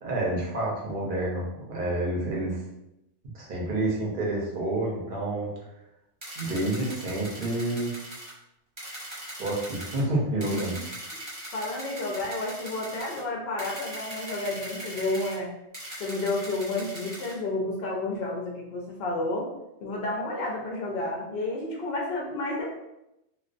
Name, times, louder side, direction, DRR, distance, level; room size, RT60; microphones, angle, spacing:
voice 1, 0.0-2.6 3.3-5.5 6.4-7.9 9.4-10.8, right 1 dB, 50° right, -3 dB, 0.8 m, -29 dB
sound 1, 6.2-8.3 8.8-10.0 10.4-13.2 13.6-15.4 15.7-17.3, right 1 dB, 20° right, 0.8 m, -40 dB
voice 2, 11.5-15.5 16.0-19.5 19.8-22.7, left 2 dB, 65° left, -1 dB, 0.7 m, -31 dB
2.4 x 2.2 x 2.4 m, 0.87 s
omnidirectional pair, 1.2 m